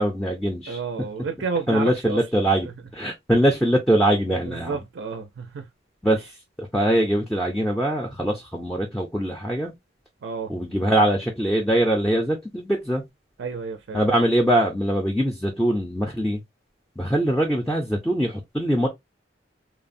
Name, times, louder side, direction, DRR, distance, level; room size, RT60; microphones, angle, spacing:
voice 1, 0.0-0.8 1.7-2.7 2.9-4.8 6.0-9.7 10.5-13.0 13.9-16.4 17.0-18.9, right 1 dB, 5° left, 0.4 m, -22 dB
voice 2, 0.7-2.7 4.3-5.7 10.2-10.5 13.4-14.1, right 5 dB, 65° right, 0.4 m, -31 dB
3.1 x 2.0 x 2.5 m
head